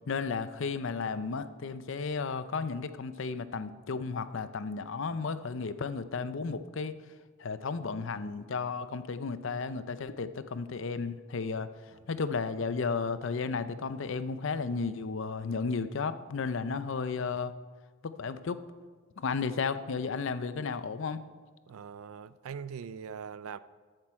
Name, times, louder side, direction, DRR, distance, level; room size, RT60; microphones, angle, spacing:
voice 1, 0.1-6.9 7.4-11.7 12.1-17.5 18.0-18.6 19.2-21.2, left 4 dB, 60° left, 0.5 m, -33 dB
voice 2, 21.7-23.6, right 6 dB, 75° right, 0.4 m, -41 dB
13.5 x 7.6 x 4.7 m
head